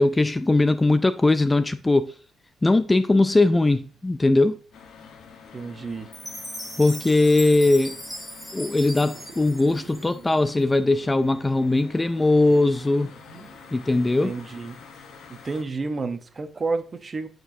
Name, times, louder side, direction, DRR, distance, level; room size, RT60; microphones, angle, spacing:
voice 1, 0.0-2.1 2.6-4.6 6.8-7.9 8.5-13.1 13.7-14.3, left 2 dB, 15° left, 0.3 m, -20 dB
sound 1, 3.4-16.4, right 5 dB, 65° right, 1.6 m, -53 dB
sound 2, 4.7-15.6, left 6 dB, 70° left, 0.9 m, -48 dB
voice 2, 5.5-6.1 14.2-14.8 15.3-17.3, right 3 dB, 35° right, 0.8 m, -30 dB
Chime, 6.1-10.5, equal, ahead, 1.8 m, -38 dB
8.7 x 4.5 x 2.7 m
cardioid pair, 90°, 0 cm